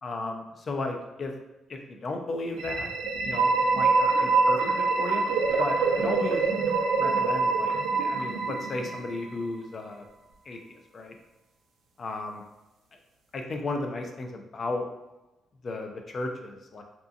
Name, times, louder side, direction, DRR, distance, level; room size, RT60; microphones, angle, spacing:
voice 1, 0.0-1.3 1.7-2.9 3.2-5.3 5.6-6.5 6.9-7.7 8.0-10.0 10.5-10.6 10.9-11.1 12.0-12.4 13.3-14.9 15.6-16.8, left 2 dB, 45° left, 3 dB, 0.4 m, -34 dB
sound 1, 2.5-9.3, right 4 dB, 90° right, 0.4 m, -25 dB
2.6 x 2.3 x 2.5 m, 1.0 s
cardioid pair, 90°, 0 cm